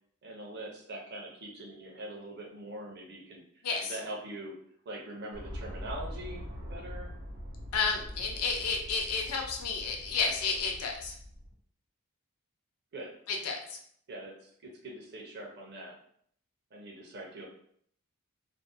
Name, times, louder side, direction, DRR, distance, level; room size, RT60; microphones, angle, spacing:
voice 1, 0.2-4.6 4.9-7.1 12.9-13.2 14.1-15.9 16.7-17.5, right 1 dB, 50° right, 0 dB, 0.6 m, -43 dB
sound 1, 5.3-11.5, equal, 70° right, 1.1 m, -43 dB
voice 2, 7.7-11.2 13.3-13.8, left 5 dB, 80° left, 2 dB, 0.5 m, -31 dB
2.5 x 2.1 x 2.5 m, 0.63 s
head